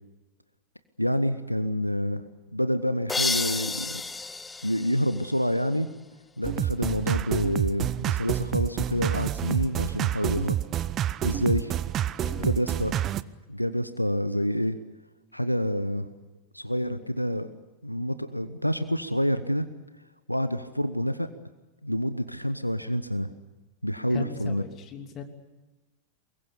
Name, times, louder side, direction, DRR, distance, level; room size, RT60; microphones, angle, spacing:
voice 1, 1.0-2.2 2.5-4.0 4.6-5.9 6.4-10.6 11.2-11.7 12.4-13.0 13.5-14.8 15.3-16.1 16.5-17.5 17.8-19.7 20.3-21.3 21.8-23.3 23.8-24.6, equal, 90° left, 12 dB, 0.9 m, -27 dB
sound 1, 3.1-5.8, left 3 dB, 10° left, 0.8 m, -31 dB
sound 2, 6.4-13.2, right 11 dB, 30° right, 0.7 m, -28 dB
voice 2, 11.9-12.6 24.1-25.2, left 6 dB, 35° left, 6 dB, 3.0 m, -39 dB
24.0 x 21.5 x 8.4 m, 1.1 s
figure-of-eight pair, 90°, 0 cm